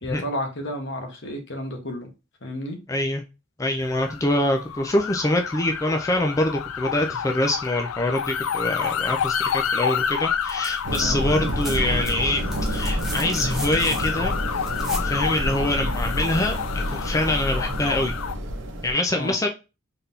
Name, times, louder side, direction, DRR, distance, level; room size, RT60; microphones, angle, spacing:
voice 1, 0.0-2.1 2.4-2.8 10.9-11.2 19.1-19.3, left 1 dB, 60° left, 1.3 m, -31 dB
voice 2, 2.9-3.2 3.6-14.3 15.0-18.2 18.8-19.5, left 1 dB, 15° left, 0.4 m, -25 dB
sound 1, 3.8-18.3, left 8 dB, 80° left, 0.4 m, -30 dB
sound 2, 10.4-11.0 11.3-15.1 16.8-16.9, right 1 dB, ahead, 1.2 m, -37 dB
sound 3, 10.8-18.9, equal, 60° right, 1.0 m, -28 dB
4.0 x 3.5 x 2.7 m
head